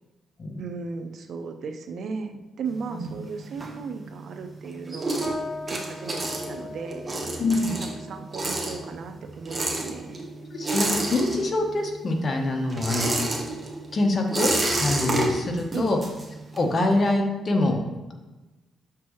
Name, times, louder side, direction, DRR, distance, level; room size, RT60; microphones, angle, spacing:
voice 1, 0.6-5.3 5.7-7.1 7.8-10.2 15.7-16.0, right 5 dB, 65° right, 7 dB, 0.6 m, -36 dB
sound 1, 2.7-4.3 4.6-11.8 12.1-16.8, right 2 dB, 25° right, 1.2 m, -29 dB
sound 2, 5.2-14.9, left 2 dB, 15° left, 2.2 m, -42 dB
voice 2, 7.4-7.7 10.5-13.3 13.9-16.0 16.5-17.8, left 2 dB, 40° left, 2 dB, 1.1 m, -25 dB
7.1 x 6.0 x 3.2 m, 1.1 s
cardioid pair, 105°, 0 cm